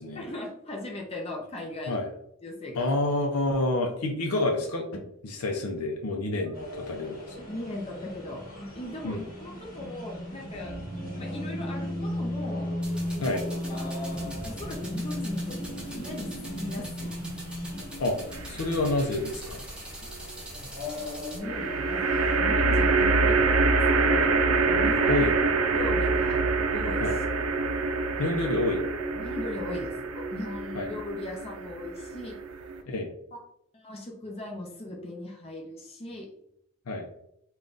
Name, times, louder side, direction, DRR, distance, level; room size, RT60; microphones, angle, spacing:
voice 1, 0.2-2.0 2.4-2.9 6.3-6.5 7.4-8.4 8.7-10.8 11.2-12.7 13.2-13.9 14.4-15.6 15.8-17.2 18.6-18.7 20.6-24.3 24.6-25.3 25.7-26.4 26.7-27.1 28.2-28.5 29.1-32.4 33.7-36.3, left 1 dB, 30° left, -1 dB, 0.6 m, -38 dB
voice 2, 2.7-6.5 6.9-7.2 9.0-9.2 13.2-13.4 18.0-18.2 18.5-19.6 25.1-25.3 27.0-27.2 28.2-28.8 30.7-30.9 32.9-33.1 36.9-37.1, left 2 dB, 90° left, 2 dB, 0.6 m, -28 dB
sound 1, 6.5-22.4, left 1 dB, 45° left, 1.3 m, -36 dB
sound 2, 12.8-21.4, right 1 dB, 5° right, 0.8 m, -43 dB
sound 3, 18.3-19.0 21.4-32.8, right 3 dB, 80° right, 0.5 m, -25 dB
3.7 x 2.3 x 3.8 m, 0.75 s
head